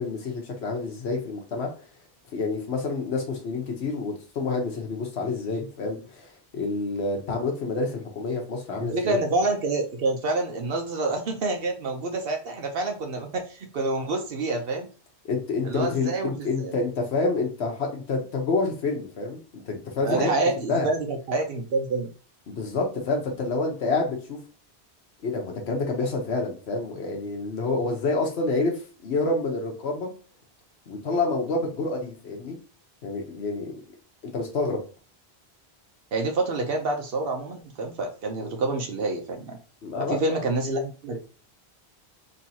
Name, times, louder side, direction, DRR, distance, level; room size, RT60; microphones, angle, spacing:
voice 1, 0.0-1.7 2.3-9.2 15.2-20.3 20.7-20.9 22.5-24.4 25.2-30.1 30.9-32.6 33.0-33.8 34.3-34.8 39.8-40.4, left 3 dB, 80° left, 1 dB, 1.2 m, -28 dB
voice 2, 8.8-14.9 15.6-16.8 20.0-22.1 36.1-39.6 40.0-41.2, right 2 dB, 65° right, 3 dB, 0.9 m, -27 dB
4.4 x 3.0 x 2.8 m, 0.37 s
omnidirectional pair, 1.1 m